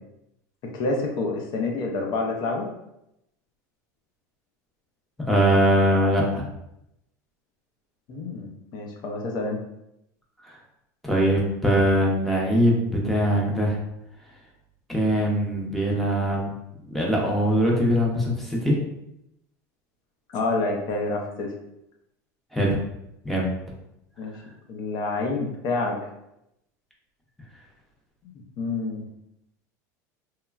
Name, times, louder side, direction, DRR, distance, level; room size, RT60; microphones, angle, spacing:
voice 1, 0.6-2.7 8.1-9.6 20.3-21.5 24.2-24.4 24.7-26.0 28.6-29.0, left 3 dB, 50° left, 1 dB, 0.6 m, -28 dB
voice 2, 5.2-6.5 11.0-13.8 14.9-16.5 16.9-18.8 22.5-22.8 23.2-23.5, equal, ahead, -3 dB, 0.7 m, -22 dB
3.0 x 2.2 x 2.3 m, 0.83 s
supercardioid pair, 115°, 9 cm